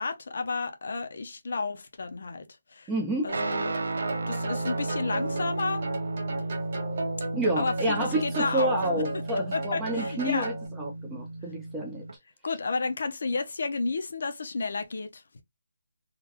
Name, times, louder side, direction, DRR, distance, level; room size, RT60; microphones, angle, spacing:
voice 1, 0.0-2.9 3.2-3.8 4.3-5.8 7.6-8.8 9.5-10.5 12.4-15.2, left 4 dB, 45° left, 0.7 m, -32 dB
voice 2, 2.9-3.3 7.3-12.0, right 1 dB, 5° right, 0.5 m, -29 dB
sound 1, 3.3-10.7, right 2 dB, 30° right, 0.9 m, -36 dB
Guitar, 3.3-12.1, right 2 dB, 90° right, 0.8 m, -34 dB
3.8 x 2.2 x 2.9 m
hypercardioid pair, 180°, 0 cm